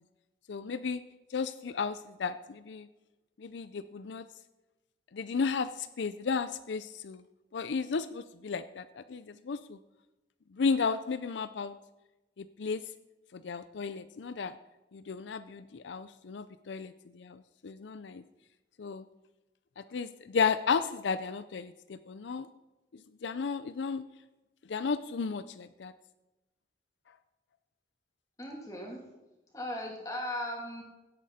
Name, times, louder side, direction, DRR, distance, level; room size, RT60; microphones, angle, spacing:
voice 1, 0.5-1.0 1.3-2.9 3.4-4.2 5.1-7.2 7.5-9.8 10.5-11.8 12.4-12.8 13.3-14.5 14.9-18.2 18.8-19.0 19.8-22.5 23.2-24.0 24.7-25.9, left 5 dB, 85° left, 13 dB, 0.5 m, -34 dB
voice 2, 28.4-29.0 29.5-30.8, left 1 dB, 20° left, -1 dB, 2.8 m, -37 dB
16.0 x 8.5 x 4.2 m, 1.1 s
head